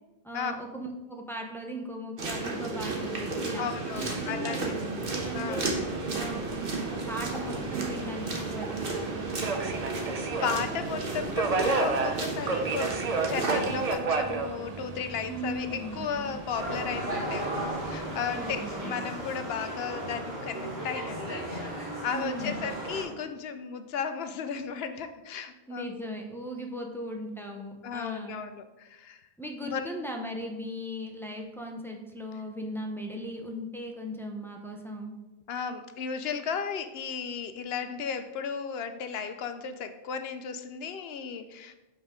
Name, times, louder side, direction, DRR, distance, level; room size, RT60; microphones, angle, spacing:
voice 1, 0.2-3.6 3.9-5.7 6.1-9.2 15.3-16.4 18.3-19.1 22.1-22.7 25.7-28.4 29.4-35.1, equal, 5° left, 1 dB, 0.6 m, -38 dB
sound 1, 2.2-13.9, right 3 dB, 65° right, 1.3 m, -33 dB
voice 2, 3.6-4.6 5.3-5.8 9.8-9.9 10.4-13.0 13.3-26.1 26.5-26.9 27.8-29.2 29.6-30.0 35.5-41.8, left 6 dB, 75° left, 9 dB, 0.8 m, -35 dB
Subway metro underground, 5.2-18.8, right 4 dB, 45° right, 0.6 m, -34 dB
sound 2, 16.5-23.0, right 1 dB, 85° right, 2.4 m, -35 dB
6.9 x 5.4 x 3.7 m, 1.1 s
omnidirectional pair, 1.0 m